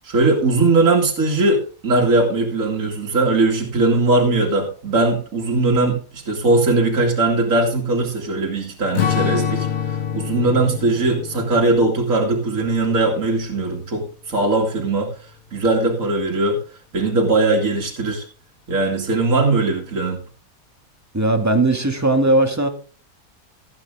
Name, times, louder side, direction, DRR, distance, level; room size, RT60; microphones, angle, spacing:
voice 1, 0.0-15.1 15.5-16.6 16.9-18.3 18.7-20.2, right 2 dB, 60° right, -1 dB, 2.8 m, -19 dB
Strum, 9.0-13.6, left 8 dB, 65° left, 1.4 m, -26 dB
voice 2, 21.1-22.7, right 2 dB, 10° right, 4 dB, 1.9 m, -18 dB
17.0 x 8.5 x 3.6 m, 0.39 s
omnidirectional pair, 1.6 m